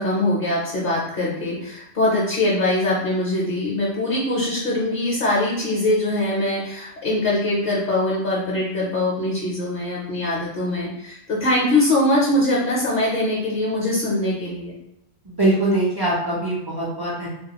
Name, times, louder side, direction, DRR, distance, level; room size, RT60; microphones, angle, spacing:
voice 1, 0.0-14.7, left 1 dB, 60° left, -4 dB, 0.7 m, -22 dB
voice 2, 15.3-17.3, right 1 dB, 40° right, -6 dB, 0.3 m, -22 dB
2.3 x 2.2 x 2.8 m, 0.85 s
omnidirectional pair, 1.2 m